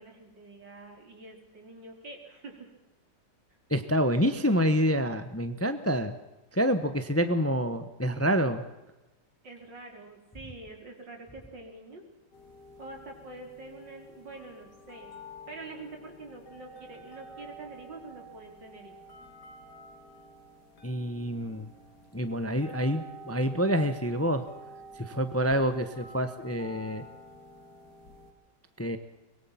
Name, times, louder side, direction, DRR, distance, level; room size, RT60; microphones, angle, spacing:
voice 1, 0.0-2.7 9.4-12.0 12.8-15.2 15.5-18.9, right 3 dB, 80° right, 2 dB, 4.8 m, -46 dB
voice 2, 3.7-6.1 6.5-8.6 20.8-21.7 22.1-24.4 25.0-27.0 28.8-29.0, equal, 10° left, 10 dB, 1.0 m, -27 dB
sound 1, 12.3-28.3, equal, 65° left, 3.4 m, -50 dB
23.5 x 22.0 x 5.9 m, 1.0 s
omnidirectional pair, 1.9 m